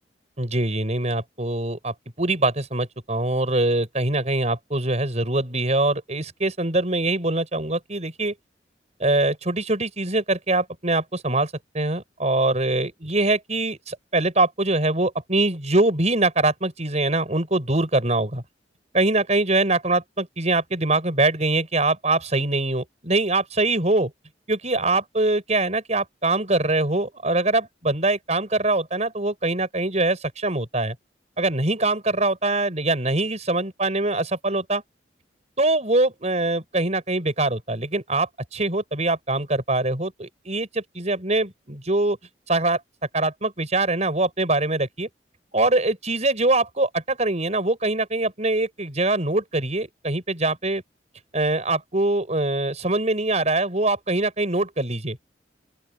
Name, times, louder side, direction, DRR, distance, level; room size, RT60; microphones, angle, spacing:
voice 1, 0.4-8.3 9.0-18.4 18.9-24.1 24.5-31.0 31.4-34.8 35.6-42.2 42.5-42.8 43.1-45.1 45.5-50.8 51.3-55.2, right 2 dB, 40° right, 5.8 m, -23 dB
open air
head